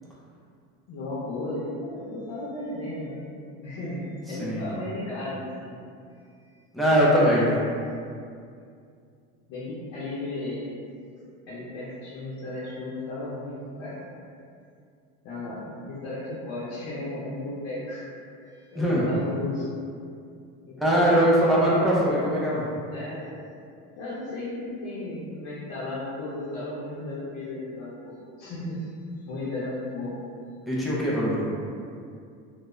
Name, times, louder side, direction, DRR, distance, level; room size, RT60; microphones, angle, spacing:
voice 1, 0.9-3.2 3.6-5.8 6.5-6.6 6.9-7.5 9.5-10.7 11.5-14.0 15.2-18.1 18.4-19.7 20.6-21.2 21.6-21.8 22.9-23.3 24.0-28.9 29.2-30.2, left 2 dB, 55° left, -9 dB, 0.6 m, -34 dB
voice 2, 4.3-4.6 6.7-7.5 18.8-19.0 20.8-22.6 30.7-31.4, equal, ahead, -8 dB, 0.3 m, -21 dB
2.3 x 2.0 x 2.9 m, 2.3 s
cardioid pair, 140°, 33 cm